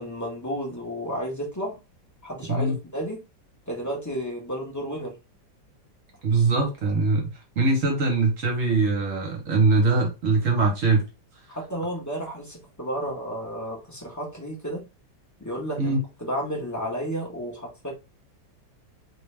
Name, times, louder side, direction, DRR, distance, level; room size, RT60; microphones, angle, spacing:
voice 1, 0.0-1.8 2.2-3.2 3.7-5.1 11.5-14.9 15.4-17.9, equal, 15° left, 0.8 m, -32 dB
voice 2, 6.2-7.3 7.6-11.0 15.8-16.0, right 3 dB, 50° right, 1.2 m, -22 dB
3.2 x 3.1 x 3.3 m
omnidirectional pair, 2.1 m